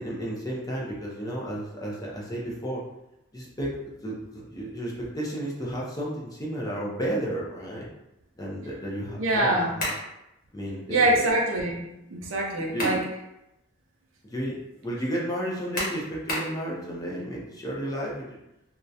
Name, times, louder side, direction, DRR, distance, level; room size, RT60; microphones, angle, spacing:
voice 1, 0.0-2.8 3.3-3.8 4.0-7.9 8.4-9.9 10.5-11.2 12.5-13.0 14.2-18.4, right 1 dB, 15° left, -4 dB, 0.4 m, -32 dB
voice 2, 9.2-9.7 10.9-13.0, right 1 dB, 65° right, -1 dB, 0.5 m, -24 dB
sound 1, 9.8-10.1 12.4-13.1 13.6-13.7 15.7-16.6, left 1 dB, 45° left, 0.8 m, -31 dB
2.3 x 2.1 x 2.6 m, 0.89 s
head